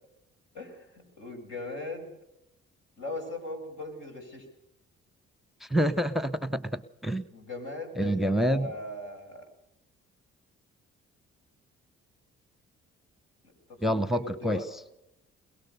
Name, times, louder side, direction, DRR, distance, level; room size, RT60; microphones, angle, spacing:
voice 1, 0.5-2.1 3.0-4.5 7.3-9.4 13.7-14.7, left 2 dB, 70° left, 2 dB, 6.8 m, -39 dB
voice 2, 5.6-7.2 8.0-8.7 13.8-14.6, equal, ahead, 16 dB, 1.0 m, -27 dB
22.0 x 22.0 x 6.7 m, 0.85 s
hypercardioid pair, 50°, 32 cm